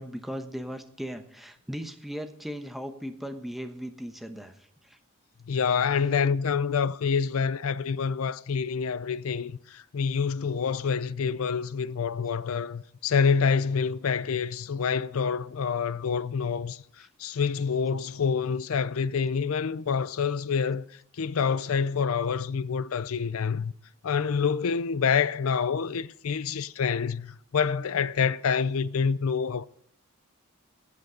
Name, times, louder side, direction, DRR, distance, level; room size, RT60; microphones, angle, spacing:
voice 1, 0.0-4.5 4.8-5.0, equal, ahead, 1.0 m, -37 dB
voice 2, 5.5-16.8 17.2-20.9 21.1-23.7 24.0-29.7, left 6 dB, 75° left, 0.5 m, -27 dB
14.0 x 8.4 x 5.1 m
head